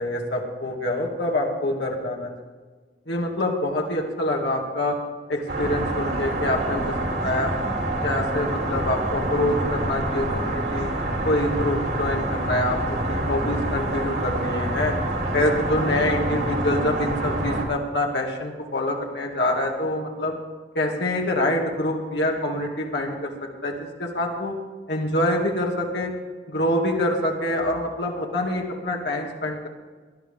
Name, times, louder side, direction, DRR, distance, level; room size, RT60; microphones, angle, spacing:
voice 1, 0.0-2.3 3.1-5.0 5.3-7.6 8.0-10.9 11.2-15.0 15.3-20.3 20.7-24.5 24.9-26.1 26.5-29.7, left 1 dB, 75° left, -1 dB, 2.3 m, -26 dB
sound 1, 5.5-17.7, right 1 dB, 65° right, 3.2 m, -26 dB
19.0 x 12.0 x 3.7 m, 1.4 s
head